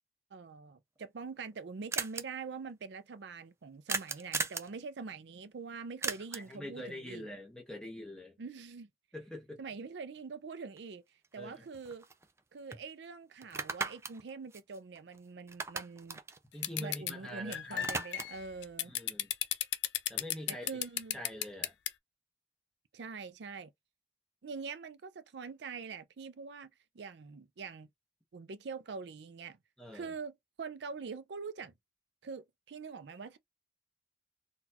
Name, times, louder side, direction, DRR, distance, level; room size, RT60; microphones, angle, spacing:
voice 1, 0.3-7.3 8.4-8.9 9.6-11.0 11.3-12.1 12.5-16.2 16.8-18.9 20.5-21.2 22.9-23.7 24.4-27.9 28.3-29.6 29.9-31.7 32.2-33.4, right 5 dB, 80° right, 0.5 m, -44 dB
sound 1, 1.0-1.1 1.2-1.3 1.5-1.6 1.9-2.2 3.9-4.7 6.0-6.6 10.8-10.9 11.2-12.4 12.7-12.8 13.4-15.2 15.5-17.3 17.6-18.5, right 4 dB, 15° right, 0.3 m, -38 dB
voice 2, 6.1-8.4 9.1-9.6 11.4-11.6 16.5-17.9 18.8-19.3 20.1-20.7 21.1-21.7 29.8-30.1, left 1 dB, 5° left, 1.0 m, -44 dB
sound 2, 16.6-17.1 17.5-21.9, left 13 dB, 85° left, 0.5 m, -33 dB
3.8 x 2.3 x 2.8 m
head